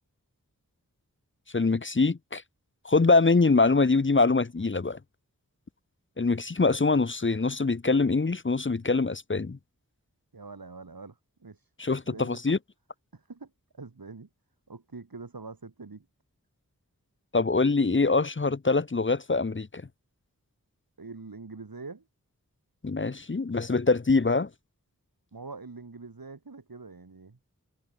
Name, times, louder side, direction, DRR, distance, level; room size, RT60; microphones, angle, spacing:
voice 1, 1.5-2.4 2.8-5.0 6.2-9.6 11.8-12.6 17.3-19.8 22.8-24.5, left 3 dB, 35° left, 0.8 m, -24 dB
voice 2, 10.3-11.7 12.0-12.4 13.1-14.3 14.7-16.1 21.0-22.0 25.3-27.4, right 4 dB, 80° right, 4.5 m, -44 dB
wide cardioid pair, 40°, 35 cm